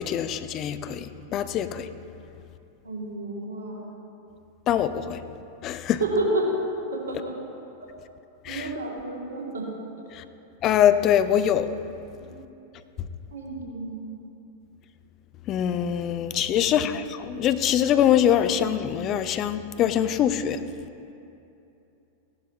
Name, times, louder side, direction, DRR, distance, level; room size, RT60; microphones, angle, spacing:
voice 1, 0.0-1.9 4.7-5.2 5.6-6.0 8.4-8.7 10.1-10.2 10.6-11.7 15.5-20.6, left 10 dB, 35° left, 12 dB, 0.6 m, -23 dB
voice 2, 2.8-3.8 6.0-6.5 6.9-7.3 8.5-9.7 12.2-12.3 13.3-14.2 16.6-16.9, right 2 dB, 70° right, -3 dB, 2.5 m, -30 dB
16.0 x 11.5 x 3.0 m, 2.8 s
figure-of-eight pair, 90°, 0 cm